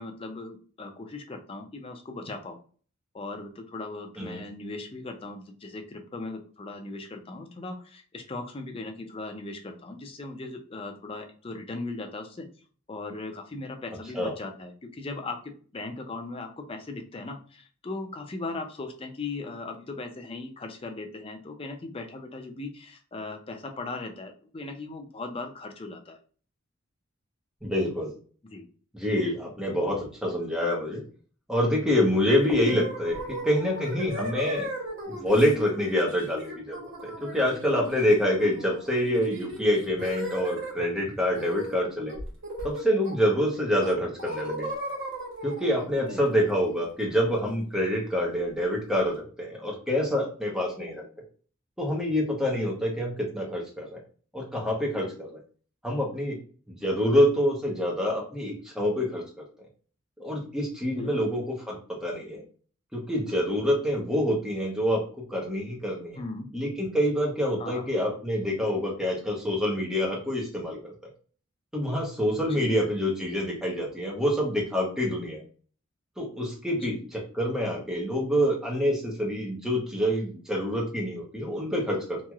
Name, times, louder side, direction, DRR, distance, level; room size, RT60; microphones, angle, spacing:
voice 1, 0.0-2.6 3.1-12.5 12.9-26.2 28.4-28.7 46.0-46.2 52.6-52.8 61.0-61.3 66.2-66.5 67.6-67.9 72.5-72.7 76.7-77.0, left 3 dB, 25° left, 5 dB, 0.4 m, -38 dB
voice 2, 27.6-28.1 28.9-31.0 31.5-34.7 35.1-42.2 42.6-44.7 45.4-51.0 51.8-54.0 54.3-55.4 55.8-56.4 56.7-59.4 60.2-62.4 62.9-65.0 65.3-66.2 66.5-70.9 71.7-75.4 76.2-82.2, equal, 5° right, -2 dB, 0.9 m, -26 dB
sound 1, 32.3-40.9 41.3-41.8 42.1-43.4 43.8-47.6, equal, 60° right, 1.0 m, -37 dB
3.0 x 2.7 x 2.4 m, 0.42 s
head